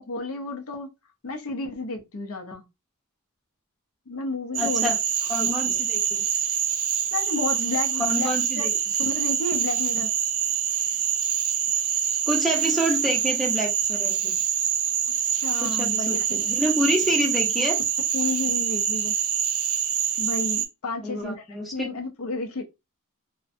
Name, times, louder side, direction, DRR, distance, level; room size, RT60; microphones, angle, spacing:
voice 1, 0.1-0.9 1.2-2.6 4.1-4.9 5.4-5.8 7.1-8.3 8.6-8.7 9.0-10.1 15.3-16.6 18.1-19.1 20.2-21.4 21.7-22.6, left 2 dB, 70° left, 0.5 m, -31 dB
Cricket / Frog, 4.5-20.7, right 9 dB, 75° right, 0.5 m, -25 dB
voice 2, 4.6-5.0 5.3-6.2 8.0-8.7 12.3-14.4 15.6-17.8 21.0-21.9, equal, ahead, 0.6 m, -27 dB
2.5 x 2.1 x 2.5 m
head